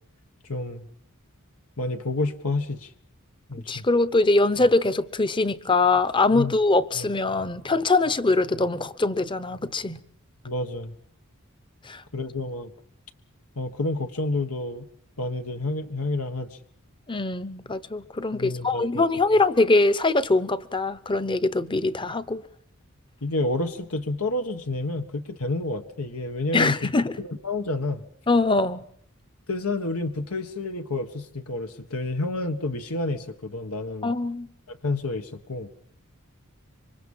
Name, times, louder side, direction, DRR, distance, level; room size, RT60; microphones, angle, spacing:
voice 1, 0.5-0.9 1.8-2.9 3.5-3.8 6.3-6.6 6.9-7.1 10.4-10.9 12.1-12.7 13.5-14.9 15.2-16.6 18.3-19.0 23.2-26.9 27.2-28.0 29.5-34.1 34.7-35.7, left 2 dB, 90° left, 1.6 m, -29 dB
voice 2, 3.7-10.0 11.9-12.0 17.1-22.4 26.5-27.2 28.3-28.8 34.0-34.5, left 3 dB, 20° left, 0.9 m, -23 dB
27.0 x 24.5 x 5.6 m
head